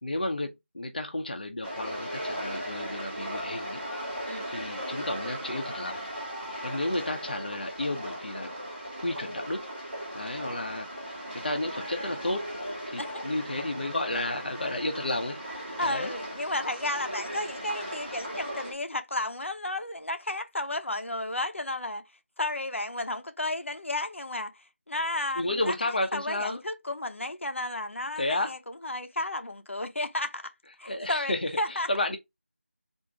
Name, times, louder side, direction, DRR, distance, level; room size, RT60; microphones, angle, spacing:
voice 1, 0.0-3.8 4.5-6.0 6.6-8.5 9.0-9.6 10.1-12.5 12.9-15.4 15.8-16.1 25.4-26.6 28.2-28.5 30.8-32.2, left 1 dB, 45° left, 0.7 m, -32 dB
sound 1, 1.6-18.7, equal, 5° right, 0.4 m, -37 dB
voice 2, 15.8-22.0 22.4-25.7 26.1-30.5 30.8-31.9, left 1 dB, 70° left, 0.9 m, -33 dB
3.9 x 2.7 x 4.6 m
figure-of-eight pair, 175°, 7 cm